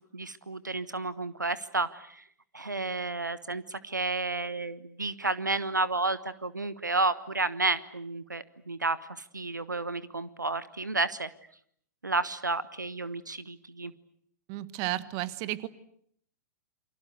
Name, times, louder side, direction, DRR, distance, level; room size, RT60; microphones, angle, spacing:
voice 1, 0.1-2.2 2.5-11.3 12.0-13.9, right 3 dB, 85° right, 16 dB, 1.2 m, -31 dB
voice 2, 14.5-15.7, right 16 dB, 35° right, 16 dB, 1.5 m, -33 dB
28.5 x 25.0 x 8.1 m, 0.66 s
figure-of-eight pair, 105°, 10 cm